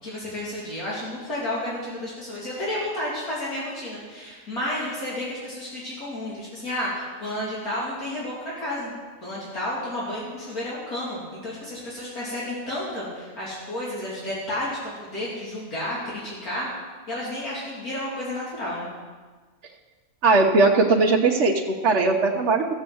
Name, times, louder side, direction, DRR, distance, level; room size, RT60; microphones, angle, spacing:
voice 1, 0.0-8.9 9.2-16.7 17.1-18.9, left 1 dB, 80° left, -8 dB, 3.6 m, -31 dB
voice 2, 20.2-22.7, right 3 dB, 55° right, -1 dB, 1.2 m, -19 dB
15.0 x 7.2 x 7.8 m, 1.4 s
omnidirectional pair, 1.5 m